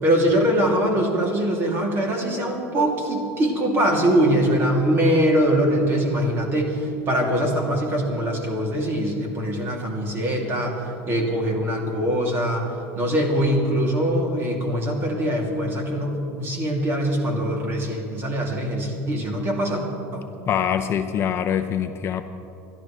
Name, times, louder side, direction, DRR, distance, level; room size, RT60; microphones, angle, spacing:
voice 1, 0.0-12.6 13.0-19.8 20.1-20.3, equal, 30° right, 0 dB, 2.7 m, -22 dB
voice 2, 20.5-22.2, left 8 dB, 35° left, 7 dB, 0.6 m, -24 dB
25.5 x 12.0 x 3.2 m, 2.7 s
supercardioid pair, 140°, 8 cm